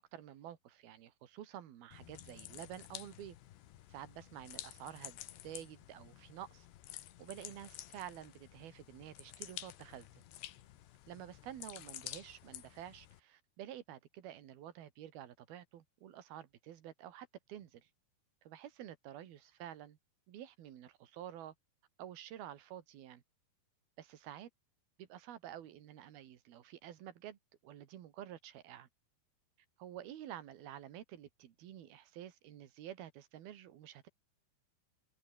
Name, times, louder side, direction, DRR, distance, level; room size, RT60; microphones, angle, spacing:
voice 1, 0.0-3.4 3.9-5.2 5.4-10.2 11.1-17.9 18.4-20.0 20.3-21.5 22.0-23.2 24.0-24.5 25.0-28.9 29.8-34.1, right 11 dB, 70° right, 3.6 m, -50 dB
sound 1, 1.9-13.2, left 14 dB, 90° left, 3.6 m, -51 dB
omnidirectional pair, 4.7 m